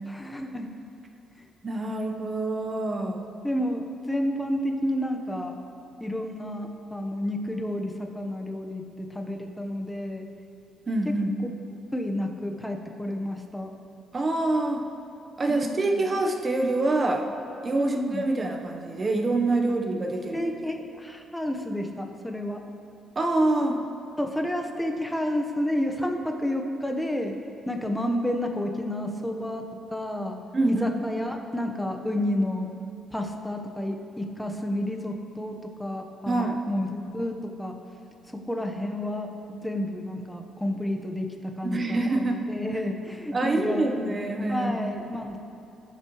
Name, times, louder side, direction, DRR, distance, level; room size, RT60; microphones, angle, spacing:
voice 1, 0.1-0.7 3.4-5.5 6.0-10.3 11.1-11.2 11.9-13.7 15.5-16.0 17.8-18.2 20.3-22.6 24.2-27.3 27.7-29.6 29.9-30.4 30.7-32.7 33.1-37.7 38.3-41.3 41.6-44.1 44.5-45.4, left 1 dB, 5° left, 3 dB, 1.1 m, -30 dB
voice 2, 1.6-3.2 10.9-11.4 14.1-14.8 15.4-17.3 17.6-20.5 23.1-23.8 30.5-30.8 36.3-36.6 41.6-42.4 43.3-44.8, right 2 dB, 30° right, 3 dB, 1.1 m, -26 dB
19.5 x 6.7 x 3.2 m, 2.7 s
cardioid pair, 90°, 0 cm